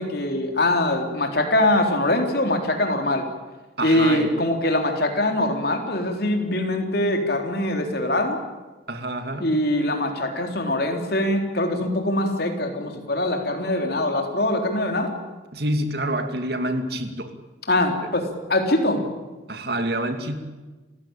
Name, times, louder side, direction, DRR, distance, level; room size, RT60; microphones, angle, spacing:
voice 1, 0.0-3.2 3.8-8.4 9.4-15.2 17.7-19.1, left 1 dB, 55° left, 4 dB, 3.9 m, -23 dB
voice 2, 3.8-4.3 8.9-9.5 15.5-17.4 19.5-20.4, right 1 dB, 55° right, 7 dB, 2.6 m, -27 dB
29.0 x 16.0 x 9.0 m, 1.2 s
head